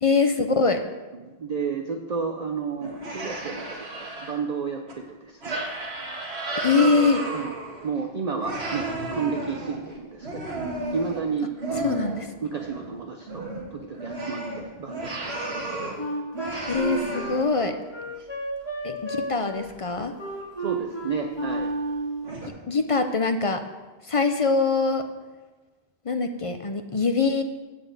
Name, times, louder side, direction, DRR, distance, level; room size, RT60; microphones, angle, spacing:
voice 1, 0.0-0.8 6.6-7.2 11.8-12.4 16.7-17.8 18.8-20.1 22.7-23.6 24.0-25.1 26.1-27.4, left 4 dB, 40° left, 7 dB, 0.5 m, -23 dB
voice 2, 1.1-5.7 7.3-7.5 7.8-16.0 20.6-21.7, right 5 dB, 45° right, 3 dB, 0.7 m, -32 dB
sound 1, 2.8-4.3 4.9-5.0 5.4-8.1 8.4-12.3 12.6-12.9 13.2-16.0 16.3-17.7 18.2-18.3 19.6-19.7 20.2-20.5 20.9-21.0 21.6-21.7 22.2-22.5, right 2 dB, 80° right, 1.9 m, -33 dB
Wind instrument woodwind instrument, 16.0-22.3, right 2 dB, 25° left, 1.7 m, -32 dB
12.0 x 4.3 x 8.1 m, 1.2 s
omnidirectional pair, 1.1 m